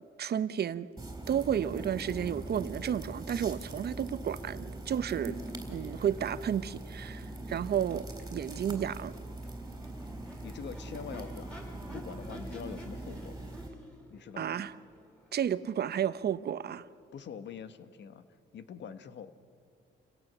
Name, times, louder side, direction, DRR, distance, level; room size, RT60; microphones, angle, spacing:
voice 1, 0.2-0.9 1.3-5.4 5.7-8.1 8.3-9.1 14.4-14.7 15.3-16.8, right 9 dB, 55° right, 0.9 m, -32 dB
sound 1, 1.0-13.7, right 2 dB, 15° right, 4.0 m, -42 dB
Crowd / Race car auto racing / Accelerating revving vroom, 3.6-17.4, equal, 5° left, 5.7 m, -53 dB
voice 2, 10.4-13.5 14.1-14.6 17.1-18.2 18.5-19.3, left 7 dB, 65° left, 1.5 m, -44 dB
29.0 x 17.0 x 6.9 m
cardioid pair, 90°, 20 cm